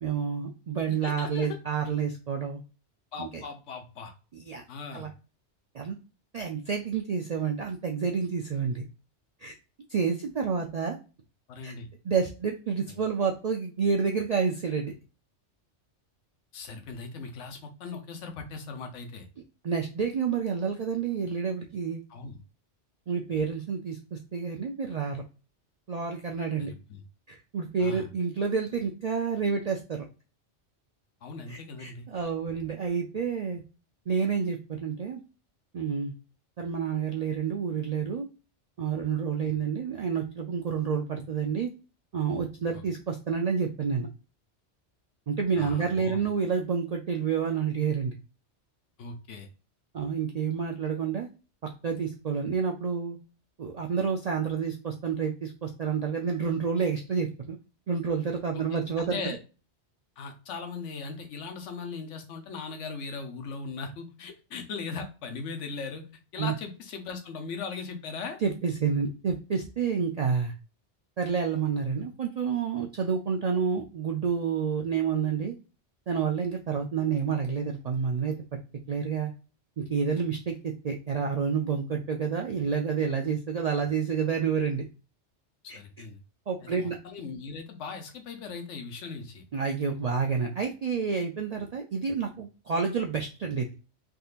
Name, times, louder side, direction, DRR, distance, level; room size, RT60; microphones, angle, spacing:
voice 1, 0.0-2.6 3.2-3.4 4.3-4.6 4.9-5.1 5.7-6.0 6.3-8.8 9.4-9.5 9.9-11.0 11.6-11.7 12.0-14.9 19.6-22.0 23.1-25.2 25.9-26.7 27.3-30.0 31.5-33.6 34.1-35.2 35.7-36.1 36.6-38.3 38.8-41.7 42.1-44.1 45.3-48.2 49.9-51.3 51.8-53.2 53.6-57.6 57.9-59.4 66.4-66.5 68.4-70.5 71.2-75.5 76.1-78.3 78.9-79.3 79.8-84.9 85.7-85.8 86.5-87.0 89.5-93.7, right 6 dB, 65° right, 2 dB, 0.4 m, -29 dB
voice 2, 0.9-1.6 3.1-4.1 4.7-5.1 11.5-11.9 12.9-13.0 16.5-19.3 22.1-22.4 26.6-27.0 27.8-28.1 31.2-32.1 39.4-39.6 42.7-42.8 45.6-46.2 49.0-49.5 58.5-58.6 59.0-59.4 60.2-66.0 66.3-68.4 85.6-86.2 86.6-89.4, left 4 dB, 85° left, 5 dB, 1.1 m, -39 dB
3.6 x 2.7 x 2.4 m, 0.33 s
omnidirectional pair, 1.2 m